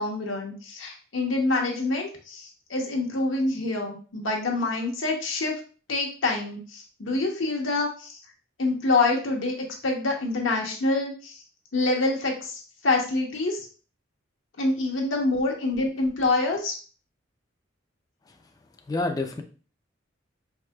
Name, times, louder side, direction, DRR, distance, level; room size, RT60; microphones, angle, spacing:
voice 1, 0.0-5.6 5.9-8.2 8.6-11.4 11.7-13.7 14.6-16.7, left 2 dB, 75° left, 0 dB, 0.9 m, -26 dB
voice 2, 18.9-19.4, left 2 dB, 20° left, 3 dB, 0.4 m, -28 dB
4.7 x 2.7 x 2.2 m, 0.38 s
head